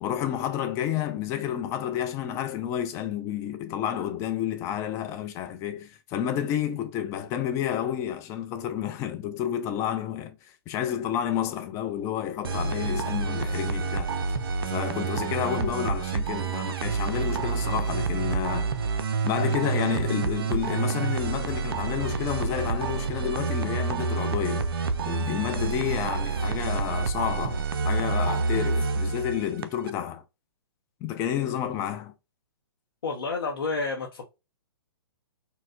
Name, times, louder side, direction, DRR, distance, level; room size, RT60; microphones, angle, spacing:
voice 1, 0.0-10.4 10.7-14.1 14.7-18.7 19.2-24.7 25.0-30.2 31.0-32.1, left 10 dB, 20° left, 0.4 m, -30 dB
sound 1, 12.4-29.9, right 4 dB, 65° right, 0.4 m, -28 dB
voice 2, 33.0-34.3, left 3 dB, 65° left, 0.6 m, -30 dB
4.1 x 2.0 x 2.4 m
figure-of-eight pair, 120°, 13 cm